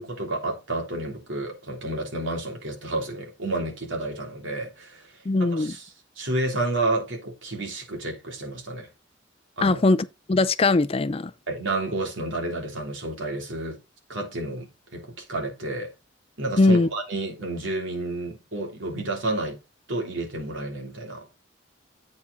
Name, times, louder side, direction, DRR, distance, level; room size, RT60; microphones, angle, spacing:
voice 1, 0.0-5.1 5.4-5.9 6.2-8.9 9.6-9.8 11.5-13.8 14.1-15.9 16.4-19.6 19.9-21.3, right 2 dB, 85° right, 3.2 m, -30 dB
voice 2, 5.3-5.7 9.6-10.0 10.3-11.3 16.6-16.9, left 2 dB, 30° left, 0.4 m, -20 dB
8.5 x 4.7 x 4.0 m
head